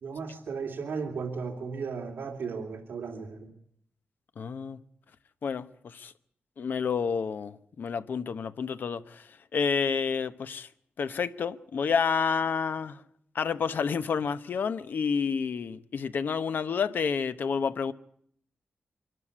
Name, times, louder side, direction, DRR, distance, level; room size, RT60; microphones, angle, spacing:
voice 1, 0.0-3.5, right 5 dB, 70° right, 3.1 m, -35 dB
voice 2, 4.4-4.8 5.4-6.1 6.6-9.2 9.5-10.7 11.0-13.0 13.3-17.9, left 6 dB, 60° left, 0.9 m, -29 dB
25.5 x 12.5 x 9.9 m
wide cardioid pair, 155°, 4 cm